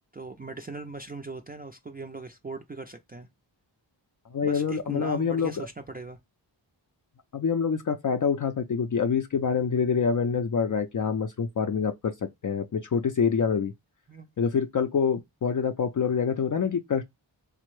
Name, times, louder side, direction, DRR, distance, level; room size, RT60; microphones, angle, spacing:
voice 1, 0.1-3.3 4.4-6.2 14.1-14.3, right 3 dB, 20° right, 0.4 m, -39 dB
voice 2, 4.3-5.6 7.3-13.7 14.4-17.0, left 6 dB, 45° left, 0.4 m, -26 dB
3.4 x 2.1 x 3.0 m
cardioid pair, 45°, 46 cm